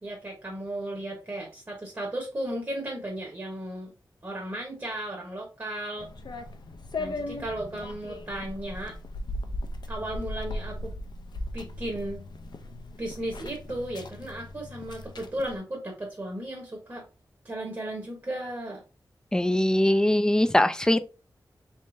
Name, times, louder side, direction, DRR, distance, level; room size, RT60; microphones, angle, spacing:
voice 1, 0.0-3.9 4.2-6.1 7.0-9.0 9.9-10.9 11.5-12.2 13.0-17.1 17.4-18.8, right 1 dB, 35° right, 1.0 m, -35 dB
sound 1, 6.0-15.6, left 1 dB, 70° left, 0.5 m, -37 dB
voice 2, 19.3-21.1, left 1 dB, 10° left, 0.3 m, -22 dB
3.6 x 3.2 x 2.5 m
wide cardioid pair, 85°, 8 cm